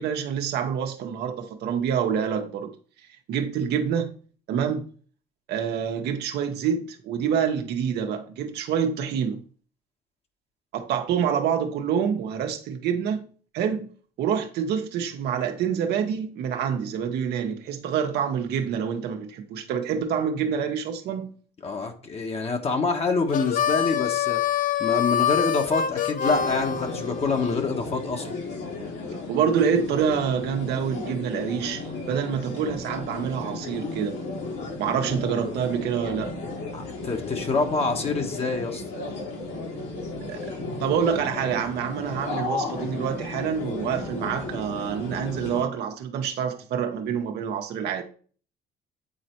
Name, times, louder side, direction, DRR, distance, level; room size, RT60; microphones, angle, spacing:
voice 1, 0.0-2.7 3.3-4.1 4.5-4.9 5.5-9.4 10.7-13.2 13.5-13.9 14.2-21.3 29.3-34.2 34.8-36.3 40.3-40.5 40.8-48.0, right 7 dB, 75° right, 1.2 m, -27 dB
voice 2, 21.6-24.4 24.8-28.3 36.7-38.8, left 4 dB, 35° left, 1.3 m, -26 dB
Harmonica, 23.3-27.6, left 9 dB, 55° left, 0.7 m, -26 dB
sound 1, 26.2-45.6, left 3 dB, 80° left, 4.1 m, -34 dB
8.9 x 4.2 x 4.5 m
cardioid pair, 110°, 17 cm